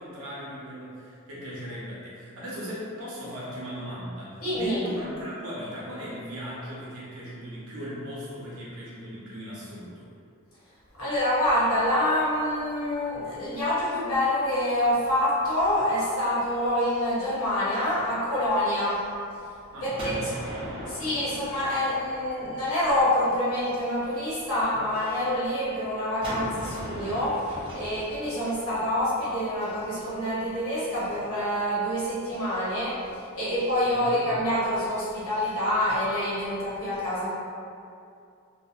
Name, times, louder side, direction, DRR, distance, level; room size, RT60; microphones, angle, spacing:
voice 1, 0.0-10.1 19.7-21.0 33.8-34.2, equal, 80° right, -7 dB, 0.8 m, -38 dB
voice 2, 4.4-4.8 10.9-19.1 19.8-20.2 20.9-37.3, left 1 dB, 80° left, -9 dB, 0.9 m, -26 dB
Gunshot gunfire, 20.0-22.8 26.2-30.0, equal, 25° right, 0.4 m, -39 dB
2.7 x 2.0 x 2.4 m, 2.4 s
head